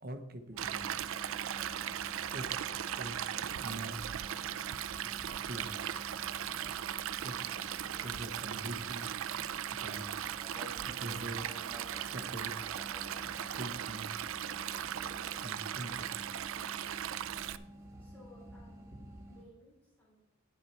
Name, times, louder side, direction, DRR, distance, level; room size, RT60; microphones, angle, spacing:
voice 1, 0.0-1.1 2.3-4.3 5.3-5.8 7.2-7.6 8.0-9.1 9.7-10.2 10.9-11.7 12.0-12.8 13.5-14.1 15.4-16.3, right 1 dB, 45° right, 7 dB, 1.0 m, -44 dB
sound 1, 0.5-19.4, right 1 dB, 15° right, 1.6 m, -50 dB
Stream, 0.6-17.6, right 10 dB, 70° right, 0.4 m, -38 dB
voice 2, 18.0-20.2, left 1 dB, 10° left, -6 dB, 3.9 m, -60 dB
10.0 x 7.7 x 4.3 m, 0.85 s
head